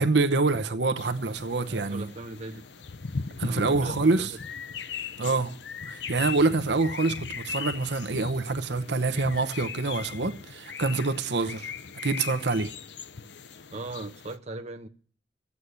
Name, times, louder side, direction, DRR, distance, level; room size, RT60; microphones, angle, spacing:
voice 1, 0.0-2.1 3.4-4.3 5.2-5.5 5.9-11.7 12.0-12.7, right 3 dB, 65° right, 0.9 m, -26 dB
sound 1, 1.0-14.4, left 5 dB, 70° left, 0.7 m, -38 dB
voice 2, 1.7-2.7 3.4-4.4 5.2-5.5 13.7-14.9, right 2 dB, 40° right, 1.0 m, -39 dB
14.5 x 8.5 x 9.7 m
head